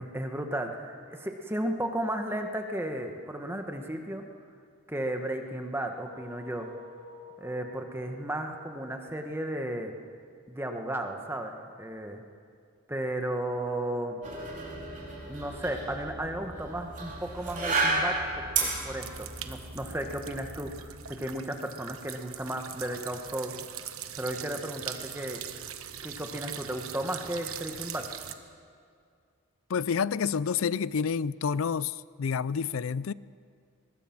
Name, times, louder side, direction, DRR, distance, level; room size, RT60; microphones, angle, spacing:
voice 1, 0.0-4.2 4.9-6.7 7.4-9.9 10.5-12.2 12.9-14.2 15.3-23.5 24.2-25.4 26.0-28.1, right 1 dB, 10° right, 4 dB, 1.5 m, -34 dB
sound 1, 5.8-10.6, left 4 dB, 30° left, 4.4 m, -52 dB
sound 2, 14.2-21.1, right 3 dB, 35° right, 4.5 m, -33 dB
sound 3, 19.0-28.3, right 9 dB, 70° right, 1.2 m, -42 dB
voice 2, 29.7-33.1, left 6 dB, 65° left, 20 dB, 0.4 m, -29 dB
23.0 x 21.0 x 6.1 m, 2.2 s
head